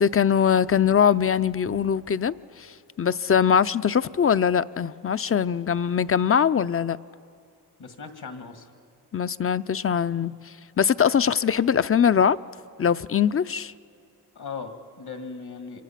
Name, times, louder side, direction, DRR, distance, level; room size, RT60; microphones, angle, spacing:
voice 1, 0.0-7.0 9.1-10.3 10.8-12.4 12.8-13.7, left 7 dB, 35° left, 15 dB, 0.5 m, -22 dB
voice 2, 7.8-8.7 10.2-10.3 14.4-15.8, left 5 dB, 75° left, 6 dB, 2.1 m, -38 dB
26.0 x 23.0 x 5.9 m, 2.5 s
cardioid pair, 45°, 38 cm